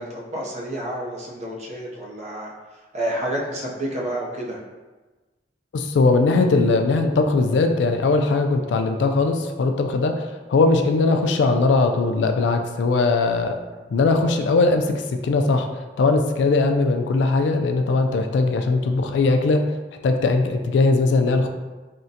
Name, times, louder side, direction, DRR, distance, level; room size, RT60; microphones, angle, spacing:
voice 1, 0.0-4.6, right 1 dB, 40° right, -3 dB, 0.6 m, -30 dB
voice 2, 5.7-13.5 13.9-15.7 16.0-19.6 20.0-21.5, left 3 dB, 80° left, 5 dB, 0.3 m, -20 dB
3.6 x 2.1 x 2.7 m, 1.2 s
head